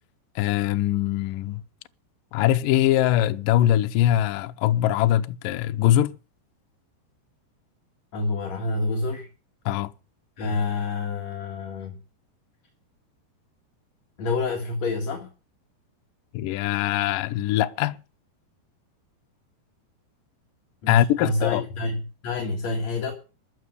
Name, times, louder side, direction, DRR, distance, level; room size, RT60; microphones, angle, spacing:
voice 1, 0.4-1.6 2.3-6.1 9.7-9.9 16.3-18.0 20.9-21.6, left 13 dB, 75° left, 2.0 m, -22 dB
voice 2, 8.1-9.3 10.4-12.0 14.2-15.3 20.8-23.1, left 3 dB, 50° left, 2.6 m, -28 dB
14.0 x 6.0 x 9.7 m
omnidirectional pair, 4.9 m